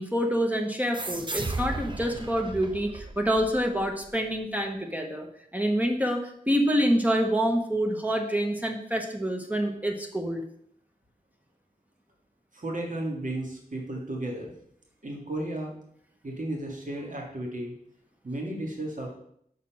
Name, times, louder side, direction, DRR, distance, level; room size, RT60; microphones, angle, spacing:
voice 1, 0.0-5.3 5.5-10.4, equal, 10° right, 3 dB, 0.9 m, -27 dB
sound 1, 0.9-4.1, right 2 dB, 30° right, 0.7 m, -35 dB
voice 2, 12.5-14.5 15.0-15.7 16.2-17.7 18.2-19.2, right 1 dB, 60° right, 0 dB, 1.9 m, -34 dB
6.1 x 4.2 x 5.8 m, 0.69 s
wide cardioid pair, 75°, 15 cm